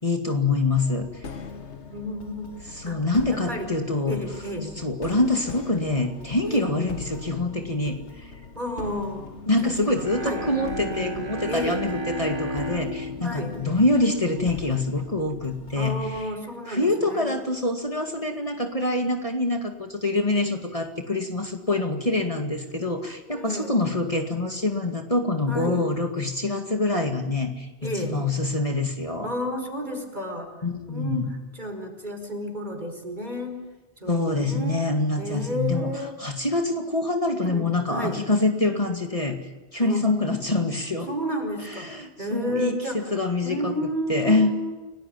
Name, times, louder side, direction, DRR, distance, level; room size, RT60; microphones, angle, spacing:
voice 1, 0.0-1.3 2.7-4.2 4.8-8.3 9.5-16.3 16.7-29.3 30.6-31.3 34.1-35.9 36.2-41.1 41.7-43.7 44.1-44.6, left 2 dB, 30° left, 3 dB, 2.3 m, -25 dB
sound 1, 0.7-16.3, left 4 dB, 80° left, 1.7 m, -42 dB
voice 2, 1.9-2.5 2.8-3.7 4.0-4.7 6.4-6.7 8.5-9.2 9.6-10.4 11.5-11.8 13.2-13.5 15.7-17.3 23.3-23.7 25.5-25.8 27.8-28.2 29.2-30.5 30.9-31.3 31.5-33.6 34.0-34.9 35.2-36.2 37.4-38.2 39.8-40.0 41.1-43.1 43.4-44.7, equal, 40° right, 5 dB, 5.0 m, -32 dB
Bowed string instrument, 9.9-14.8, equal, 25° right, 3.6 m, -33 dB
30.0 x 19.5 x 9.4 m, 1.2 s
omnidirectional pair, 1.1 m